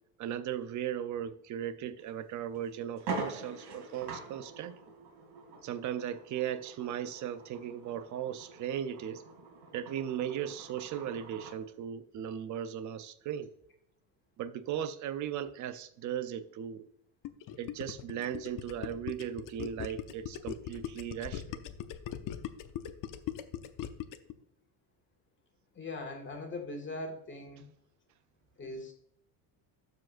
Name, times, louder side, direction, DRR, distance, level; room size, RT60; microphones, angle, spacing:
voice 1, 0.2-4.8 5.6-9.2 9.7-13.5 14.4-16.9 17.6-21.6, right 10 dB, 40° right, 0.6 m, -37 dB
sound 1, 2.0-2.1 2.5-2.6 3.0-11.6, right 3 dB, 60° right, 2.8 m, -44 dB
Gurgling, 17.2-24.3, left 11 dB, 45° left, 0.7 m, -40 dB
voice 2, 25.8-27.7 28.6-28.9, left 2 dB, 25° left, 1.8 m, -40 dB
13.5 x 5.0 x 2.5 m
cardioid pair, 135°, 47 cm